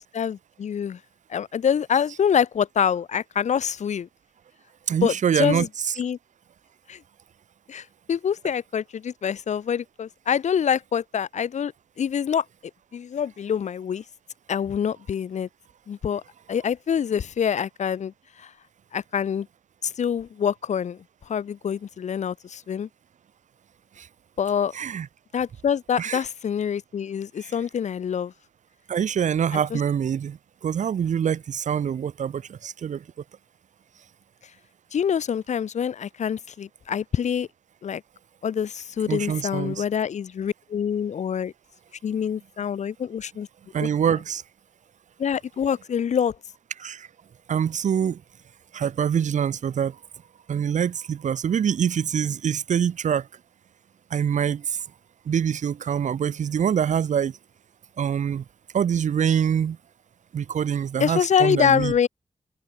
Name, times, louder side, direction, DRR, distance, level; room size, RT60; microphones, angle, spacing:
voice 1, 0.1-1.0 1.3-4.1 5.0-5.7 6.0-6.2 6.9-7.0 7.7-11.7 12.0-12.4 12.9-14.0 14.5-15.5 15.9-16.2 16.5-18.1 18.4-18.5 18.9-19.5 19.8-21.0 21.3-22.9 24.4-24.7 25.3-28.3 29.5-29.8 34.9-37.5 37.8-38.0 38.4-41.5 42.0-43.5 43.8-43.9 45.2-46.4 61.0-62.1, left 8 dB, 70° left, 0.6 m, -25 dB
voice 2, 4.9-5.7 24.0-24.1 24.7-25.1 26.0-26.2 27.4-27.5 28.9-33.0 39.1-39.8 43.7-44.4 46.8-47.1 47.5-48.2 48.7-50.0 50.5-53.3 54.1-54.8 55.3-57.4 58.0-58.4 58.7-59.8 60.3-61.9, right 8 dB, 75° right, 0.7 m, -25 dB
wide cardioid pair, 80°, 12 cm